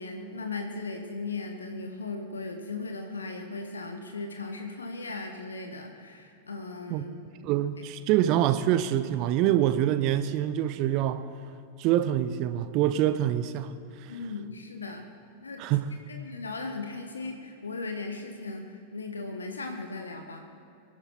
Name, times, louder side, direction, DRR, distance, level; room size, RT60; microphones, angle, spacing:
voice 1, 0.0-7.1 14.1-15.1 15.4-15.6 16.1-20.4, left 3 dB, 75° left, 1.3 m, -37 dB
voice 2, 7.4-11.3 11.8-13.8 14.0-14.1 15.6-15.9, right 12 dB, 40° right, 0.6 m, -25 dB
24.0 x 11.0 x 4.4 m
figure-of-eight pair, 90°, 0 cm